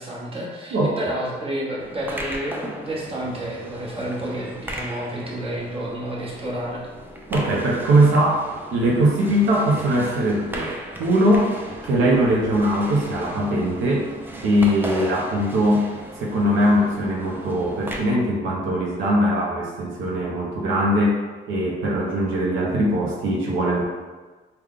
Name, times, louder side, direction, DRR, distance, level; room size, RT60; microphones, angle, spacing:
voice 1, 0.0-6.9, right 1 dB, 30° right, -4 dB, 1.0 m, -30 dB
sound 1, 1.8-18.0, right 1 dB, 10° right, 0.5 m, -36 dB
voice 2, 7.3-10.7 11.0-11.6 11.8-14.1 14.4-15.9 16.2-21.2 21.5-23.8, right 1 dB, 85° right, -2 dB, 0.7 m, -21 dB
3.3 x 2.2 x 3.7 m, 1.3 s
cardioid pair, 90°, 20 cm